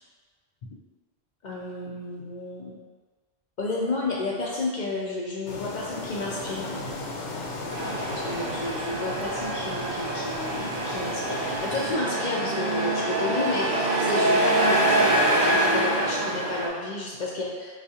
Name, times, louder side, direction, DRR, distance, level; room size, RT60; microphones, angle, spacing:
voice 1, 1.4-2.8 3.6-6.8 8.2-17.7, left 2 dB, 60° left, -3 dB, 0.5 m, -31 dB
sound 1, 5.5-12.0, left 2 dB, 80° left, 0.9 m, -36 dB
Truck, 7.7-16.7, right 1 dB, 60° right, 0.8 m, -25 dB
4.4 x 2.3 x 2.7 m, 1.4 s
omnidirectional pair, 1.2 m